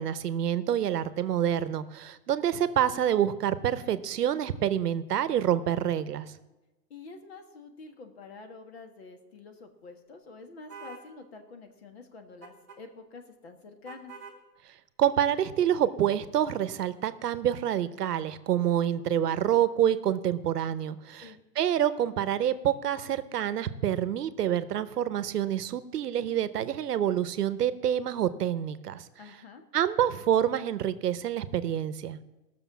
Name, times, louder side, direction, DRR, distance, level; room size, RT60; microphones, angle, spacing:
voice 1, 0.0-6.3 15.0-21.3 21.6-29.1 29.7-32.2, right 10 dB, 70° right, 14 dB, 1.0 m, -27 dB
voice 2, 6.9-14.1 21.2-21.4 29.2-29.6, left 4 dB, 40° left, 6 dB, 1.5 m, -47 dB
sound 1, 10.7-11.1 12.4-12.8 13.8-14.4, right 5 dB, 10° right, 0.6 m, -45 dB
17.0 x 6.7 x 7.2 m, 1.0 s
hypercardioid pair, 180°, 48 cm